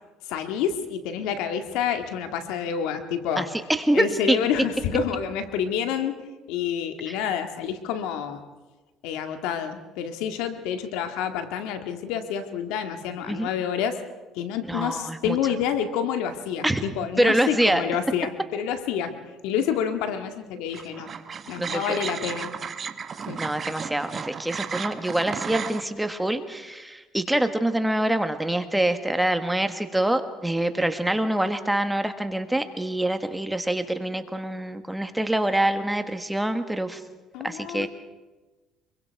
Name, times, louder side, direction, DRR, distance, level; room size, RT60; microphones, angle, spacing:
voice 1, 0.3-3.5 3.9-6.2 6.5-8.4 9.0-14.0 14.3-21.1 21.5-22.5 23.3-23.4 37.3-37.9, left 8 dB, 85° left, 7 dB, 1.9 m, -28 dB
voice 2, 3.4-4.4 7.1-7.2 13.3-13.5 14.7-15.4 16.6-16.8 17.2-17.8 21.6-22.0 23.4-37.0 37.4-37.9, right 1 dB, 5° right, 8 dB, 1.5 m, -25 dB
sound 1, 20.7-25.8, right 6 dB, 35° right, 1.2 m, -34 dB
25.0 x 23.0 x 4.7 m, 1.2 s
cardioid pair, 110°, 0 cm